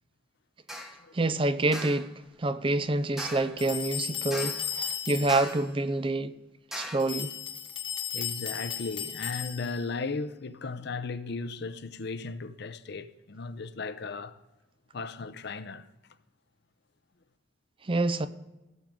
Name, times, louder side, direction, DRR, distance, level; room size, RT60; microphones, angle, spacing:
sound 1, 0.7-1.0 1.7-2.1 3.2-3.6 4.3-4.7 5.3-5.7 6.7-7.1, equal, ahead, 1.0 m, -39 dB
voice 1, 1.1-2.1 2.4-6.3 6.7-7.3 17.8-18.3, right 2 dB, 25° right, 0.4 m, -27 dB
sound 2, 3.6-5.5 7.0-9.9, left 8 dB, 25° left, 1.1 m, -35 dB
voice 2, 8.1-14.3 14.9-15.9, left 4 dB, 55° left, 0.6 m, -36 dB
16.5 x 7.4 x 3.7 m
head